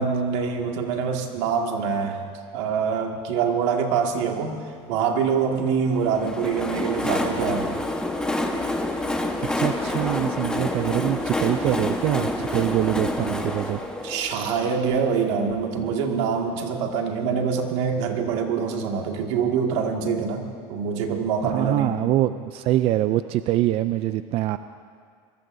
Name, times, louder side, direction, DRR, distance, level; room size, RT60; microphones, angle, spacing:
voice 1, 0.0-2.2 2.5-4.6 4.9-7.8 14.0-20.4 20.7-21.9, right 6 dB, 80° right, 2 dB, 2.1 m, -25 dB
Train, 5.9-15.6, left 1 dB, 5° left, 1.2 m, -28 dB
voice 2, 9.6-13.8 15.8-15.9 21.4-24.6, right 13 dB, 40° right, 12 dB, 0.4 m, -24 dB
23.0 x 22.0 x 2.7 m, 2.1 s
supercardioid pair, 140°, 15 cm